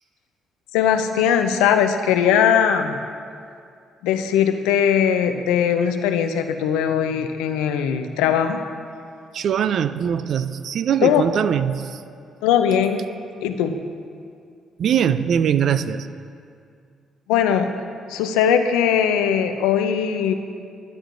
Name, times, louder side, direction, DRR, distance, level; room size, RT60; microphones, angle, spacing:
voice 1, 0.7-3.0 4.0-8.6 11.0-11.3 12.4-13.0 13.4-13.8 17.3-17.7 18.1-20.3, left 8 dB, 85° left, 7 dB, 0.5 m, -20 dB
voice 2, 9.3-12.0 14.8-16.1, right 8 dB, 65° right, 13 dB, 0.4 m, -21 dB
12.0 x 11.5 x 2.6 m, 2.3 s
hypercardioid pair, 55°, 0 cm